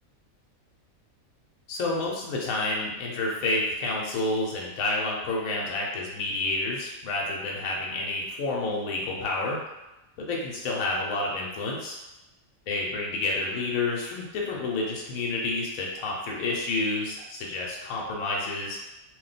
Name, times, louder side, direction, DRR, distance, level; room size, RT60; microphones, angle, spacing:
voice 1, 1.7-9.6 10.2-12.0 12.7-18.8, left 2 dB, 80° left, -2 dB, 1.1 m, -29 dB
2.6 x 2.2 x 3.9 m, 0.98 s
omnidirectional pair, 1.4 m